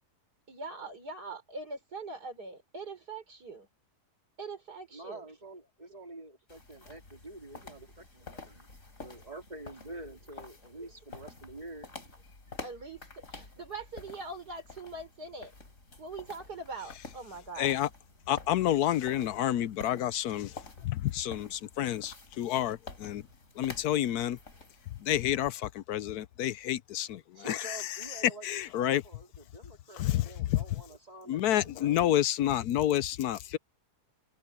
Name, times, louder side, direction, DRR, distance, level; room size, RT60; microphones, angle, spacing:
voice 1, 0.5-3.7 4.4-5.3 12.6-15.5 16.0-17.8 20.8-20.9 27.4-27.5, right 3 dB, 75° right, 5.5 m, -42 dB
voice 2, 4.9-8.7 9.0-11.9 27.4-32.0, right 2 dB, 25° right, 4.1 m, -47 dB
sound 1, 6.5-25.5, left 3 dB, 50° left, 4.4 m, -49 dB
voice 3, 17.6-17.9 18.3-23.2 23.6-24.4 25.0-28.2 28.4-29.0 29.9-30.6 31.3-33.6, left 12 dB, 75° left, 1.1 m, -29 dB
omnidirectional pair, 1.7 m